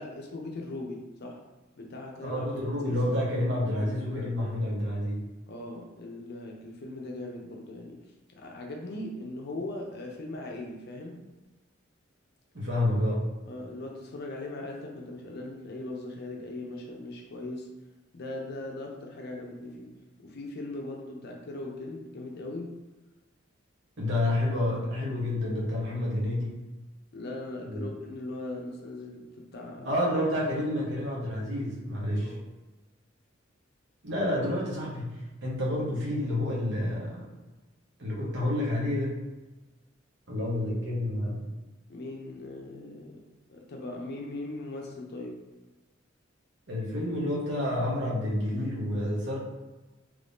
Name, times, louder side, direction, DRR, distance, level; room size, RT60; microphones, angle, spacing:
voice 1, 0.0-1.4 1.8-2.4 2.8-3.0 3.8-4.6 5.5-8.0 8.3-11.2 13.5-17.7 18.1-19.9 20.2-22.8 27.1-29.9 32.2-32.5 41.9-43.2 43.5-45.4, left 2 dB, 55° left, 0 dB, 0.5 m, -39 dB
voice 2, 2.2-5.2 12.5-13.3 24.0-26.6 27.6-27.9 29.8-32.3 34.0-37.3 38.0-39.2 40.3-41.4 46.7-49.4, left 1 dB, 60° right, -4 dB, 1.0 m, -29 dB
3.1 x 2.6 x 3.4 m, 1.2 s
head